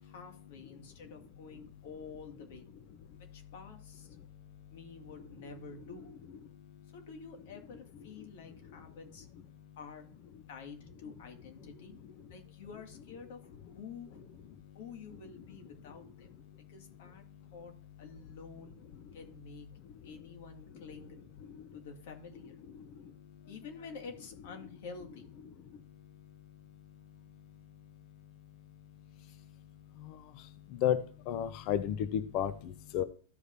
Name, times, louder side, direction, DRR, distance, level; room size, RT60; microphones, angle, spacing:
voice 1, 0.0-2.7 3.3-4.2 4.7-6.1 6.9-9.3 9.8-10.1 10.5-11.9 12.3-14.3 14.7-16.3 16.7-17.2 17.5-17.7 18.0-18.8 19.1-19.7 20.0-21.2 21.7-22.6 23.4-25.3, left 5 dB, 60° left, 4 dB, 2.1 m, -49 dB
voice 2, 30.8-33.0, left 10 dB, 45° left, 12 dB, 0.7 m, -32 dB
14.5 x 5.0 x 2.6 m, 0.42 s
hypercardioid pair, 140°, 0 cm